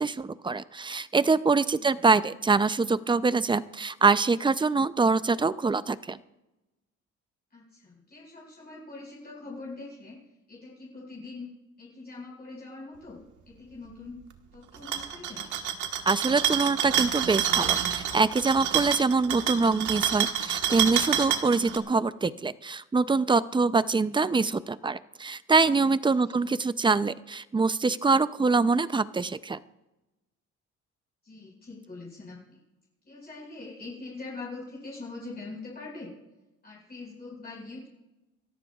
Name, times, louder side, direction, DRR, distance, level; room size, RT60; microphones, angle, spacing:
voice 1, 0.0-6.2 16.1-29.6, right 4 dB, 15° right, 15 dB, 0.5 m, -24 dB
voice 2, 7.5-10.2 10.5-11.5 11.8-14.2 14.5-15.5 26.1-26.4 31.2-32.6 33.0-36.1 36.6-37.9, left 3 dB, 30° left, -5 dB, 5.2 m, -43 dB
sound 1, 14.7-21.8, right 9 dB, 80° right, 1.4 m, -28 dB
28.0 x 14.0 x 2.4 m, 1.0 s
cardioid pair, 90°, 30 cm